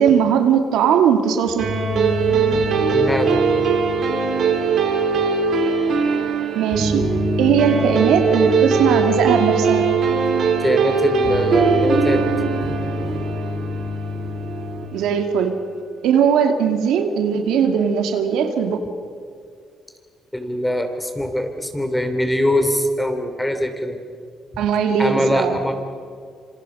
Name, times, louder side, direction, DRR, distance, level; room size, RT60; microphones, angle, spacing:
voice 1, 0.0-1.7 6.5-7.0 7.4-9.9 14.9-15.6 16.0-18.8 24.6-25.6, right 7 dB, 90° right, 5 dB, 2.3 m, -18 dB
sound 1, 1.5-14.8, right 1 dB, 50° right, 4.7 m, -25 dB
sound 2, 1.6-14.3, right 5 dB, 70° right, 4.3 m, -21 dB
voice 2, 2.9-3.4 10.6-12.2 20.3-24.0 24.5-24.6 25.0-25.7, equal, 10° left, 6 dB, 3.3 m, -22 dB
27.0 x 26.0 x 5.5 m, 2.3 s
cardioid pair, 90°, 0 cm